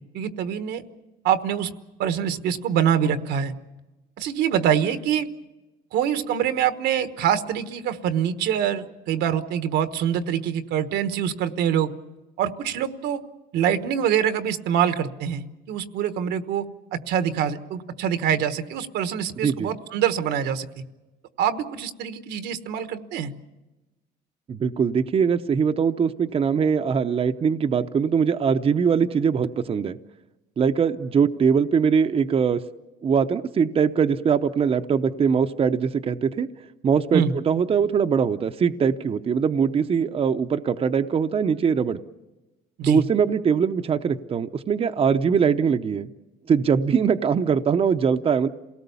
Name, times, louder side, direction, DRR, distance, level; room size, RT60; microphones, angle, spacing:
voice 1, 0.1-0.8 1.2-1.7 2.0-3.5 4.2-5.3 5.9-11.9 12.4-13.2 13.5-16.7 16.9-20.7 21.4-23.3 37.1-37.3 42.8-43.0, right 9 dB, 80° right, 10 dB, 1.3 m, -25 dB
voice 2, 19.4-19.7 24.5-30.0 30.6-32.6 33.0-36.5 36.8-42.0 42.9-46.1 46.5-48.5, right 6 dB, 35° right, 8 dB, 0.7 m, -22 dB
27.5 x 18.5 x 7.0 m, 1.1 s
cardioid pair, 110°, 17 cm